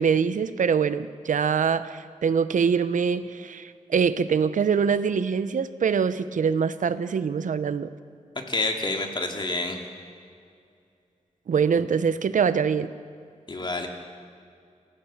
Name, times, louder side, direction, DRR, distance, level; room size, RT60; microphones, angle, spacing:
voice 1, 0.0-7.9 11.5-12.9, right 6 dB, 85° right, 13 dB, 0.9 m, -24 dB
voice 2, 8.5-9.8 13.5-13.9, left 2 dB, 35° left, 3 dB, 2.6 m, -28 dB
27.5 x 15.5 x 7.3 m, 2.4 s
wide cardioid pair, 120°, 13 cm